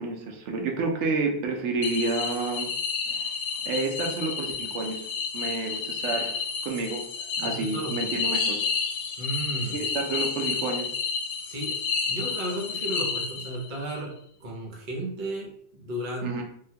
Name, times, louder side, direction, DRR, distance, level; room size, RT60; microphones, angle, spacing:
voice 1, 0.0-2.7 3.1-3.3 3.6-5.1 5.3-7.0 7.4-8.6 9.7-10.9 16.2-16.4, right 3 dB, 75° right, 2 dB, 0.9 m, -30 dB
sound 1, 1.8-13.8, left 5 dB, 80° left, 0.9 m, -30 dB
voice 2, 7.4-8.0 9.2-9.8 11.5-11.8 12.1-14.1 14.4-16.3, right 1 dB, 45° right, -2 dB, 0.8 m, -34 dB
3.5 x 2.2 x 2.7 m, 0.67 s
omnidirectional pair, 1.2 m